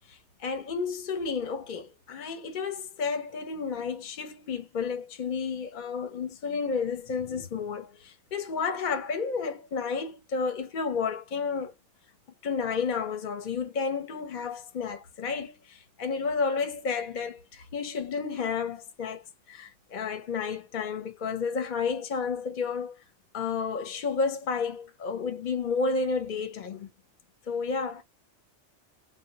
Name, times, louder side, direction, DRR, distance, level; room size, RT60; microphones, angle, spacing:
voice 1, 0.1-11.7 12.4-19.2 19.5-22.9 23.3-26.9 27.5-28.0, left 5 dB, 50° left, 0.6 m, -31 dB
2.2 x 2.1 x 3.8 m
omnidirectional pair, 1.2 m